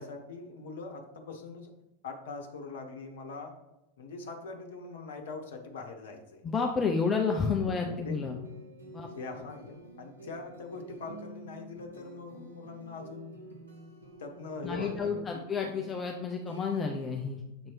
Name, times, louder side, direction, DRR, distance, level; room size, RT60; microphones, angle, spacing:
voice 1, 0.0-1.7 2.0-3.5 4.0-6.4 7.8-8.4 9.0-13.3 14.2-15.4, left 3 dB, 55° left, 3 dB, 1.0 m, -42 dB
voice 2, 6.4-8.4 8.9-9.1 14.6-17.4, left 5 dB, 20° left, 2 dB, 0.6 m, -30 dB
sound 1, 7.2-17.2, right 2 dB, 75° right, 1.9 m, -50 dB
7.2 x 3.0 x 4.6 m, 0.92 s
figure-of-eight pair, 90°, 0 cm